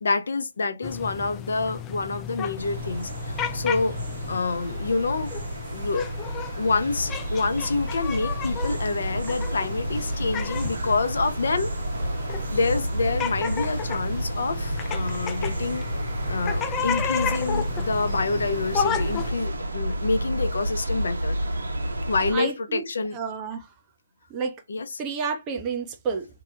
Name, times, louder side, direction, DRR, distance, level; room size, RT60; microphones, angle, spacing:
voice 1, 0.0-4.0 4.3-5.3 5.7-6.1 6.6-11.7 12.5-15.8 16.3-21.4 22.1-23.2 24.7-24.9, left 3 dB, 65° left, 0.6 m, -27 dB
sound 1, 0.8-19.3, left 7 dB, 15° left, 0.3 m, -34 dB
sound 2, 2.6-22.3, right 1 dB, 75° right, 1.0 m, -30 dB
voice 2, 22.3-22.8 23.1-23.7 24.3-24.6 25.0-26.3, right 5 dB, 20° right, 0.6 m, -30 dB
2.8 x 2.2 x 3.7 m
figure-of-eight pair, 150°, 0 cm